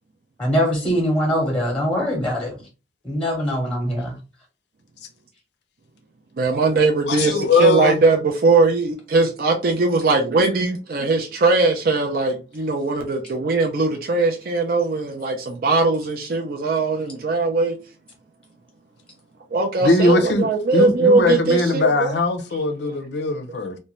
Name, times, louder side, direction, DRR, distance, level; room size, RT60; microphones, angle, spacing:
voice 1, 0.4-2.6 3.0-4.2, equal, 5° left, 0.8 m, -22 dB
voice 2, 6.4-17.7 19.5-22.2 22.8-23.0, right 3 dB, 50° right, 0.4 m, -20 dB
voice 3, 7.1-8.0 19.8-20.5 20.7-23.8, left 3 dB, 70° left, 0.5 m, -20 dB
2.5 x 2.1 x 3.0 m
head